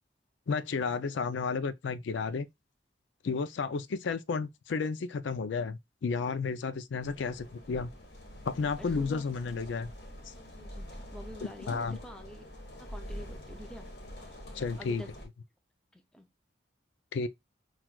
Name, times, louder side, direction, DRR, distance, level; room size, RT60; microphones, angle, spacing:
voice 1, 0.5-2.5 3.2-7.9 8.5-9.9 10.3-10.4 11.7-12.0 14.5-15.0 17.1-17.3, left 4 dB, 80° left, 0.4 m, -32 dB
sound 1, 7.0-15.3, equal, 60° left, 1.2 m, -45 dB
voice 2, 8.8-9.3 10.3-12.5 12.8-13.9 14.3-14.4 14.8-15.1 15.9-16.3, equal, 5° left, 0.4 m, -48 dB
5.9 x 2.4 x 2.3 m
head